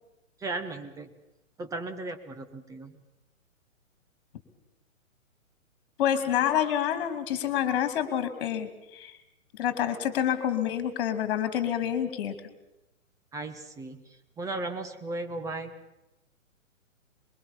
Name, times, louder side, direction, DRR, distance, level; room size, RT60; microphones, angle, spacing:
voice 1, 0.4-1.1 1.6-2.9 13.3-14.0 14.4-15.7, right 2 dB, 10° right, 6 dB, 1.2 m, -36 dB
voice 2, 6.0-9.1 9.6-12.3, left 10 dB, 40° left, 10 dB, 2.7 m, -27 dB
23.5 x 22.0 x 7.2 m, 0.94 s
figure-of-eight pair, 130°, 41 cm